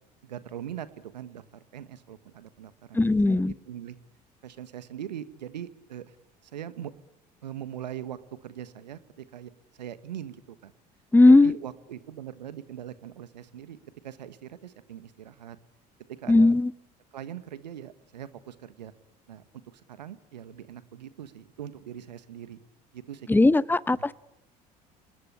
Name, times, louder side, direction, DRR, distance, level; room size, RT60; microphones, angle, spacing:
voice 1, 0.2-4.0 4.4-6.2 6.4-6.9 7.4-9.5 9.8-10.7 11.2-13.8 14.0-15.6 16.1-16.5 17.1-18.9 19.3-19.4 19.7-22.6 22.9-23.4, right 10 dB, 80° right, 1.5 m, -41 dB
voice 2, 2.9-3.5 11.1-11.6 16.3-16.7 23.3-24.1, left 2 dB, 10° left, 0.9 m, -18 dB
27.5 x 19.5 x 9.9 m
figure-of-eight pair, 60°, 21 cm